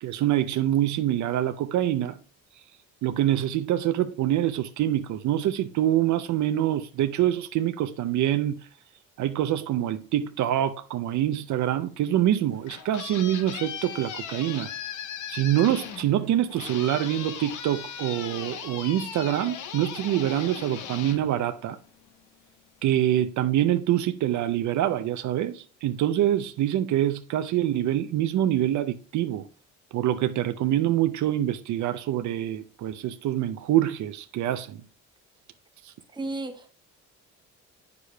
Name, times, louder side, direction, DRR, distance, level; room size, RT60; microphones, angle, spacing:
voice 1, 0.0-2.2 3.0-8.6 9.2-14.7 15.3-21.8 22.8-29.5 29.9-34.8 35.8-35.9, right 12 dB, 70° right, 0.5 m, -25 dB
sound 1, 12.4-22.1, left 8 dB, 80° left, 0.9 m, -38 dB
voice 2, 36.1-36.7, right 2 dB, 15° right, 1.0 m, -33 dB
8.2 x 6.7 x 2.2 m
cardioid pair, 90°, 30 cm